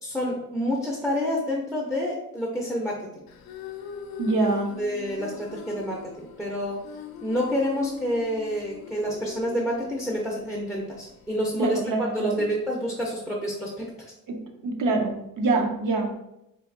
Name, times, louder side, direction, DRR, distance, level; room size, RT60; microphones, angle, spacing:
voice 1, 0.0-3.2 4.8-6.8 7.2-11.8 12.1-13.9, equal, ahead, -3 dB, 0.4 m, -28 dB
sound 1, 3.3-11.5, left 8 dB, 85° left, 0.5 m, -42 dB
voice 2, 4.2-4.7 11.6-12.5 14.3-14.4 14.6-16.1, right 3 dB, 65° right, 3 dB, 0.6 m, -25 dB
4.0 x 2.6 x 2.5 m, 0.85 s
wide cardioid pair, 160°, 35 cm